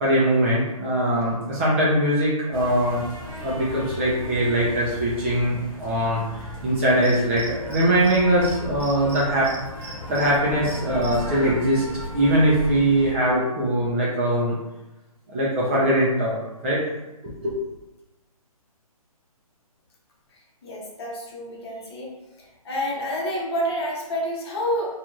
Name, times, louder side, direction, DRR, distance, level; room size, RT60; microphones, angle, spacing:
voice 1, 0.0-3.0 3.4-9.5 9.8-11.8 12.1-14.5 15.3-16.4 16.6-16.8 17.2-17.6, right 1 dB, 20° right, -7 dB, 0.4 m, -22 dB
sound 1, 2.5-13.1, equal, 5° left, 0.9 m, -36 dB
Cricket, 7.0-8.2 8.4-8.5 8.8-10.3 10.6-11.1, right 4 dB, 45° right, 1.1 m, -39 dB
voice 2, 20.6-22.1 22.6-24.9, equal, 45° left, -3 dB, 0.8 m, -28 dB
2.5 x 2.4 x 3.0 m, 1.0 s
hypercardioid pair, 150°, 19 cm